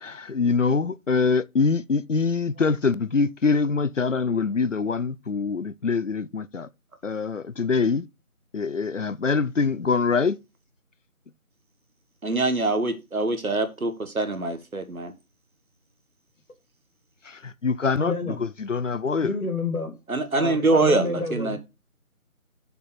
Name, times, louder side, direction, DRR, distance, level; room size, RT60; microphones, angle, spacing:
voice 1, 0.0-6.7 7.0-8.1 8.5-10.4 17.3-19.3, left 4 dB, 60° left, 0.5 m, -24 dB
voice 2, 12.2-15.1 20.1-21.6, right 2 dB, 70° right, 1.6 m, -24 dB
voice 3, 18.0-18.4 19.2-20.0 20.3-21.6, left 2 dB, 80° left, 2.6 m, -29 dB
6.8 x 4.4 x 6.6 m
figure-of-eight pair, 180°, 43 cm